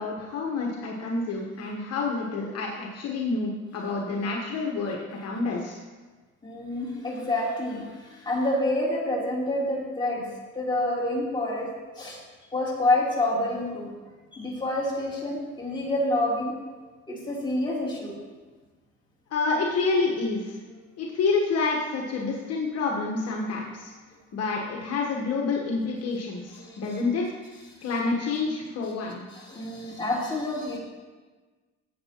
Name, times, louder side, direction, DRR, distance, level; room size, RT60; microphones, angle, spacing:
voice 1, 0.0-5.8 19.3-20.6 21.0-23.9 24.3-27.3 27.8-29.2, left 3 dB, 55° left, -1 dB, 1.3 m, -28 dB
voice 2, 6.4-10.2 10.5-11.7 12.0-12.2 12.5-13.9 14.3-16.5 17.1-18.1 26.6-26.8 29.3-30.8, left 1 dB, 15° left, -5 dB, 3.3 m, -28 dB
14.5 x 8.2 x 3.0 m, 1.3 s
cardioid pair, 110°, 29 cm